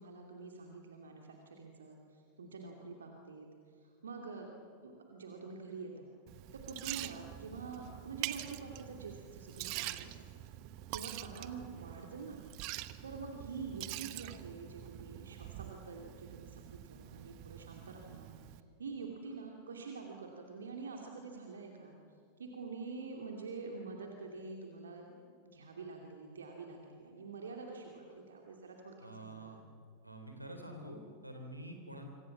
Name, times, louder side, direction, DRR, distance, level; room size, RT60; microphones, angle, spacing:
voice 1, 0.0-3.5 3.8-4.5 4.8-6.1 6.5-10.4 10.9-12.4 13.0-18.3 18.8-22.0 22.4-25.1 25.4-29.5, right 4 dB, 70° right, 1 dB, 2.7 m, -46 dB
Liquid, 6.3-18.6, right 16 dB, 45° right, 1.0 m, -45 dB
voice 2, 29.0-29.6 30.0-32.0, right 1 dB, 85° right, 4 dB, 3.6 m, -47 dB
26.0 x 25.5 x 7.4 m, 2.3 s
figure-of-eight pair, 90°, 0 cm